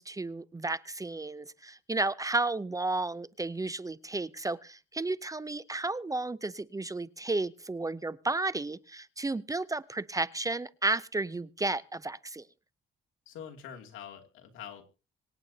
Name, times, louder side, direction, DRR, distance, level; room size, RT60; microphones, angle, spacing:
voice 1, 0.0-12.4, right 2 dB, 15° right, 0.6 m, -33 dB
voice 2, 13.3-14.8, left 8 dB, 85° left, 2.7 m, -45 dB
25.5 x 8.8 x 2.8 m
cardioid pair, 90°, 20 cm